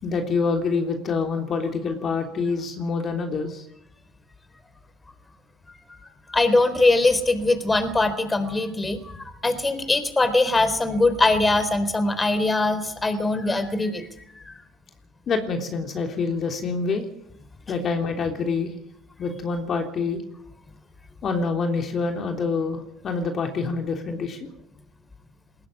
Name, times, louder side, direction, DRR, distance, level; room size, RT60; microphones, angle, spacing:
voice 1, 0.0-3.6 15.3-17.1 17.7-18.7 19.2-20.2 21.2-24.5, left 4 dB, 50° left, 3 dB, 3.4 m, -26 dB
voice 2, 6.3-14.1 14.3-14.6, left 2 dB, 20° left, 12 dB, 4.0 m, -22 dB
21.0 x 16.5 x 8.6 m, 0.76 s
supercardioid pair, 75°, 0 cm